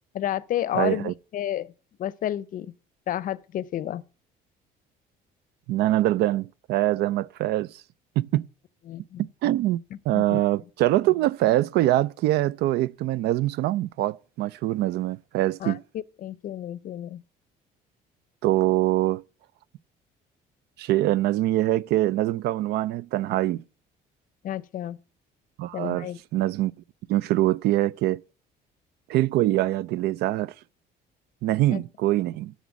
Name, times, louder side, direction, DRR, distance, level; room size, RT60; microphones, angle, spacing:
voice 1, 0.1-1.7 2.0-2.7 3.1-4.0 8.9-9.3 10.1-10.4 15.6-17.2 24.4-25.0 25.7-26.2 31.7-31.8, left 12 dB, 55° left, 0.6 m, -31 dB
voice 2, 0.7-1.1 5.7-7.8 8.2-8.5 9.2-9.8 10.1-15.8 18.4-19.2 20.8-23.6 25.6-26.1 26.3-26.7 27.1-28.2 29.1-30.5 31.4-32.5, right 15 dB, 75° right, 0.4 m, -24 dB
12.0 x 4.2 x 6.9 m
cardioid pair, 110°, 17 cm